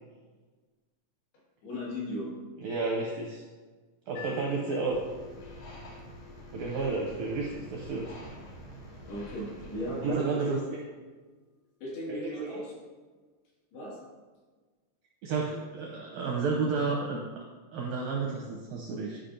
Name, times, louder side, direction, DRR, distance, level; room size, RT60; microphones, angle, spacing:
voice 1, 1.6-2.3 4.2-4.3 9.0-10.6 11.8-12.8 13.7-14.0, equal, 70° left, -6 dB, 3.8 m, -37 dB
voice 2, 2.6-3.4 4.1-5.0 6.5-8.1 10.0-10.6 12.1-12.5 15.2-17.2 17.7-19.2, right 4 dB, 80° right, -1 dB, 1.9 m, -31 dB
sound 1, 4.2-10.3, left 8 dB, 85° left, 3.8 m, -51 dB
sound 2, 4.9-10.1, equal, 50° left, 2.0 m, -47 dB
11.5 x 5.1 x 2.6 m, 1.4 s
omnidirectional pair, 4.8 m